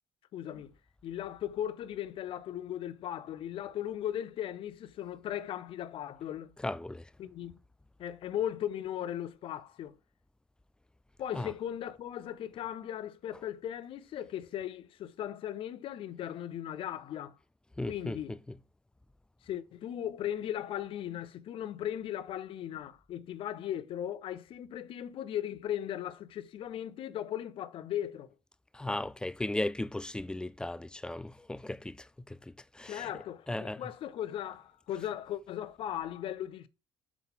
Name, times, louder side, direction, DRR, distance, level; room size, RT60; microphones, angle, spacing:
voice 1, 0.3-0.7 1.0-6.6 7.2-7.5 8.0-10.0 11.2-17.4 17.9-18.4 19.4-28.3 32.9-36.7, left 11 dB, 60° left, 0.6 m, -37 dB
voice 2, 6.6-7.1 11.3-11.5 17.8-18.6 28.7-33.1 33.5-33.8, left 1 dB, 10° left, 0.3 m, -36 dB
5.9 x 3.8 x 5.6 m
cardioid pair, 100°, 10 cm